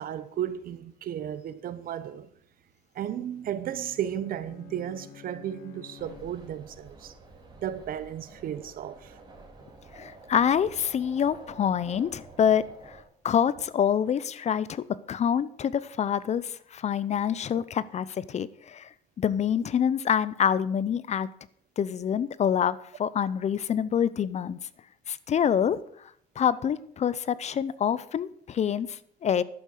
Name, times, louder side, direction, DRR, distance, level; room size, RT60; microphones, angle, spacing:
voice 1, 0.0-2.3 2.9-7.1 7.6-9.2, right 10 dB, 60° right, 1.1 m, -34 dB
Bowed string instrument, 3.2-6.8, left 10 dB, 80° left, 1.3 m, -51 dB
sound 1, 6.0-13.0, right 3 dB, 25° right, 5.0 m, -50 dB
voice 2, 9.9-13.0 13.2-18.9 19.2-21.3 21.8-24.6 25.1-25.8 26.4-29.4, left 8 dB, 40° left, 0.6 m, -26 dB
11.5 x 8.2 x 6.6 m
cardioid pair, 110°, 17 cm